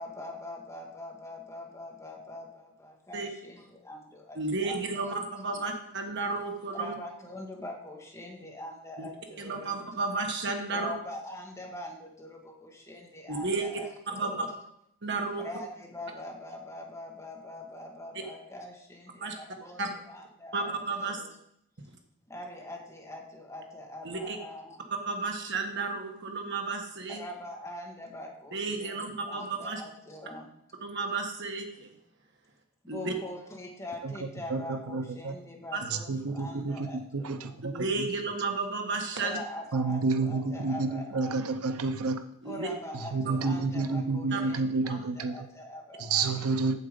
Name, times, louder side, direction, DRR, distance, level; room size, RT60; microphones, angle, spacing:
voice 1, 0.0-4.4 4.6-5.2 5.5-5.6 6.7-9.7 10.7-14.5 15.4-20.7 21.0-21.4 22.3-24.8 27.1-30.5 32.8-37.5 39.1-41.5 42.4-46.4, left 1 dB, 15° left, 0 dB, 1.7 m, -43 dB
voice 2, 4.3-6.9 9.0-9.1 9.4-10.9 13.3-13.6 14.1-14.5 15.0-15.4 19.2-19.3 19.8-19.9 20.5-21.2 24.0-24.4 25.1-27.2 28.5-29.8 30.8-31.9 32.9-33.1 35.7-35.8 37.6-39.4 42.4-42.7 44.3-44.4, right 3 dB, 55° right, 3 dB, 1.5 m, -32 dB
voice 3, 34.5-35.4 35.9-38.1 39.7-42.2 43.0-45.3 46.0-46.7, right 3 dB, 80° right, 9 dB, 0.7 m, -30 dB
8.2 x 7.6 x 5.1 m, 0.72 s
head